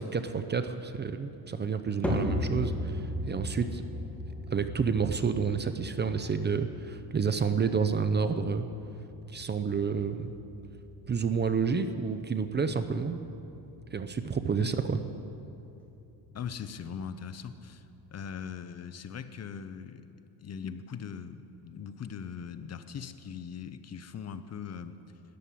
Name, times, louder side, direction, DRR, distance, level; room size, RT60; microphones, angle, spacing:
voice 1, 0.0-3.8 4.5-8.7 9.3-10.3 11.1-13.2 13.9-15.0, right 5 dB, 25° right, 9 dB, 0.6 m, -29 dB
sound 1, 2.0-18.5, left 1 dB, 5° left, 2.1 m, -39 dB
voice 2, 16.3-20.1 20.4-25.0, left 7 dB, 35° left, 12 dB, 0.7 m, -40 dB
13.5 x 11.0 x 8.4 m, 2.8 s
cardioid pair, 115°, 43 cm